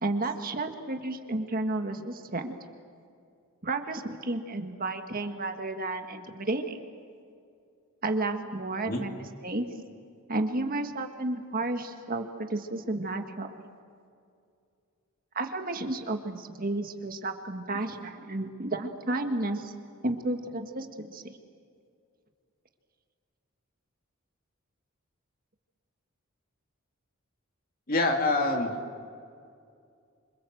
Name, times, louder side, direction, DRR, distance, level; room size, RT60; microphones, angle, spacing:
voice 1, 0.0-2.5 3.6-6.8 8.0-9.6 10.3-13.5 15.3-19.7 20.0-21.4, right 2 dB, 45° right, 6 dB, 1.7 m, -32 dB
voice 2, 27.9-28.7, left 2 dB, 45° left, 3 dB, 2.7 m, -25 dB
26.5 x 25.5 x 7.8 m, 2.3 s
head